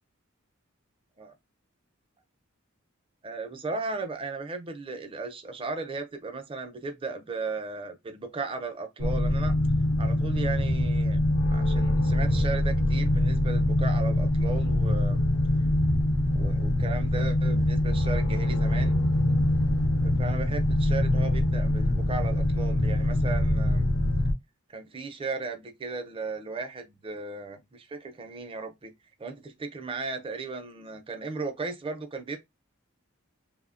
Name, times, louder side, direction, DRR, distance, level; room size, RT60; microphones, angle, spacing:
voice 1, 3.2-9.5 10.0-11.2 11.5-15.2 16.3-18.9 20.0-23.9 24.7-28.9 29.2-32.4, right 3 dB, 25° right, 0.5 m, -36 dB
sound 1, 9.0-24.3, left 1 dB, 80° left, 0.6 m, -24 dB
2.9 x 2.1 x 2.4 m
head